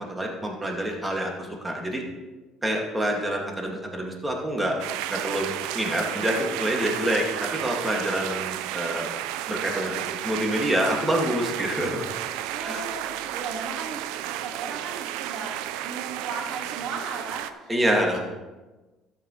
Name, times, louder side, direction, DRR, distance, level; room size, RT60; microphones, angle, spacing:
voice 1, 0.0-2.0 2.6-4.8 5.1-9.1 9.5-12.1 12.6-12.8 17.7-18.2, right 1 dB, 15° right, 0 dB, 2.3 m, -27 dB
sound 1, 4.8-17.5, right 12 dB, 80° right, 0.5 m, -32 dB
voice 2, 9.5-10.2 12.5-17.7 18.1-18.2, right 4 dB, 65° right, 2 dB, 2.0 m, -37 dB
13.0 x 8.2 x 3.3 m, 1.2 s
supercardioid pair, 75°, 0 cm